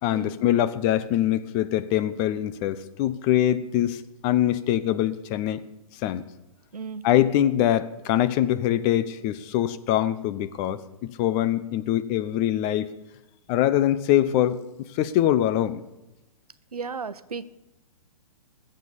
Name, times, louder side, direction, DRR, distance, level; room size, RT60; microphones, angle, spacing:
voice 1, 0.0-5.6 6.0-6.2 7.0-12.9 13.5-14.6 14.9-15.8, left 12 dB, 35° left, 13 dB, 0.9 m, -23 dB
voice 2, 6.7-7.0 16.7-17.4, right 5 dB, 85° right, 14 dB, 0.8 m, -34 dB
21.0 x 7.9 x 7.0 m, 1.0 s
figure-of-eight pair, 120°, 19 cm